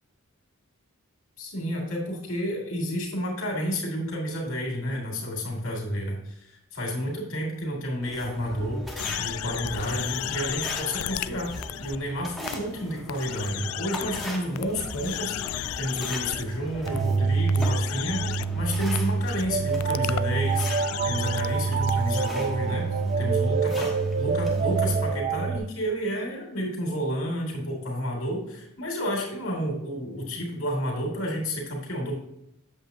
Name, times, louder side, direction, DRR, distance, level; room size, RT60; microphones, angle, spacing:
voice 1, 1.4-11.5 11.8-18.3 18.5-22.9 23.2-32.1, equal, 70° left, -1 dB, 2.7 m, -31 dB
sound 1, 8.0-25.2, equal, ahead, 1.2 m, -40 dB
sound 2, 9.0-12.0 12.5-12.6 13.1-14.3 14.6-16.4 16.9-17.0 17.5-18.5 19.0-19.1 19.2-19.5 19.8-22.3, left 13 dB, 90° left, 0.3 m, -34 dB
sound 3, 16.9-25.6, right 4 dB, 35° right, 0.3 m, -26 dB
8.3 x 7.6 x 2.9 m, 0.79 s
head